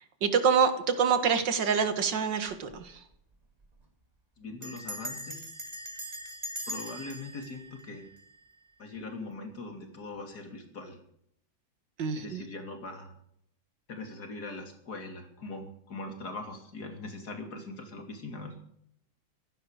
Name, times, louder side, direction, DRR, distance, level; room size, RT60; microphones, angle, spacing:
voice 1, 0.2-3.0 12.0-12.4, right 6 dB, 70° right, 9 dB, 2.4 m, -26 dB
Bell, 2.5-2.9 3.1-3.2 3.4-3.8 4.6-8.7, equal, 20° right, 2.3 m, -41 dB
voice 2, 4.4-5.5 6.7-8.1 8.8-11.0 12.2-13.1 13.9-18.6, left 2 dB, 55° left, 5 dB, 3.4 m, -41 dB
15.0 x 11.5 x 6.5 m, 0.70 s
omnidirectional pair, 2.0 m